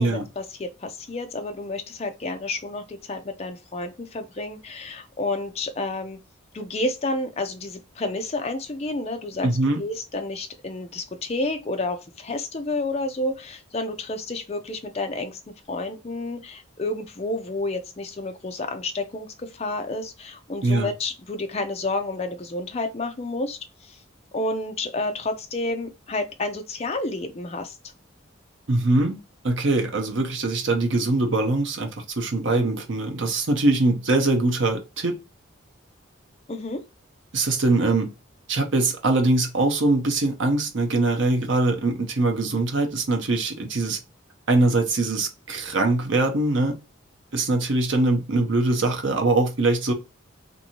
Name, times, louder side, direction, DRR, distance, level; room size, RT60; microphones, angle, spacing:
voice 1, 0.0-6.2 6.5-9.5 9.8-15.4 15.7-24.0 24.3-27.8 36.5-36.8, left 2 dB, 30° left, 0.4 m, -30 dB
voice 2, 9.4-9.8 20.6-20.9 28.7-29.2 29.4-35.2 37.3-38.1 38.5-44.0 44.5-46.8 47.3-49.9, right 2 dB, 65° right, 0.7 m, -22 dB
2.6 x 2.6 x 2.8 m
head